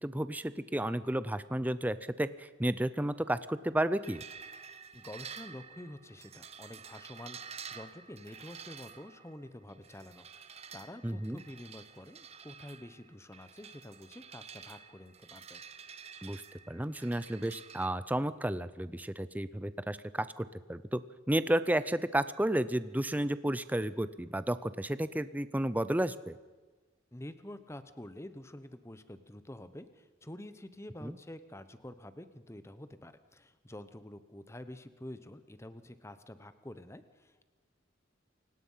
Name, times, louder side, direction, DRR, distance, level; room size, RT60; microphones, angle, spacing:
voice 1, 0.0-4.2 11.0-11.4 16.2-21.0 21.3-26.4 31.0-31.2, right 1 dB, 10° right, 14 dB, 0.5 m, -32 dB
sound 1, 4.0-17.9, right 6 dB, 35° right, 0.9 m, -50 dB
voice 2, 4.9-15.6 27.1-37.5, left 1 dB, 15° left, 12 dB, 1.0 m, -48 dB
28.0 x 17.5 x 5.7 m, 1.3 s
head